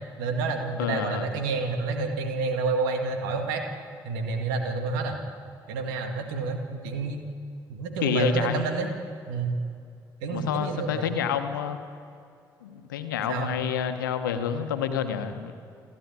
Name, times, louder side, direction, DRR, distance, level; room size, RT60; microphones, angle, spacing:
voice 1, 0.2-3.6 4.0-5.2 5.7-7.2 7.7-8.9 9.3-9.6 10.2-11.2 13.3-13.6, right 4 dB, 85° right, 5 dB, 2.0 m, -29 dB
voice 2, 0.8-1.3 8.0-8.6 10.3-11.8 12.6-15.5, left 8 dB, 90° left, 8 dB, 1.1 m, -28 dB
29.0 x 11.0 x 9.6 m, 2.4 s
hypercardioid pair, 40°, 11 cm